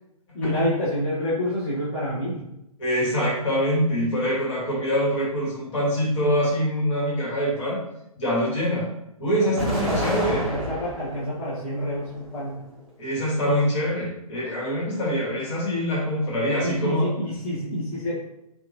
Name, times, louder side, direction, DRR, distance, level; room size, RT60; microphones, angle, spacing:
voice 1, 0.3-2.4 9.4-12.5 16.6-18.2, left 1 dB, 20° left, -11 dB, 0.9 m, -28 dB
voice 2, 2.8-7.8 8.2-8.9 9.2-10.4 13.0-17.1, equal, 50° left, -6 dB, 1.4 m, -24 dB
Explosion, 9.6-11.2 11.7-12.6, equal, ahead, 1.1 m, -29 dB
2.8 x 2.3 x 2.6 m, 0.83 s
figure-of-eight pair, 130°, 19 cm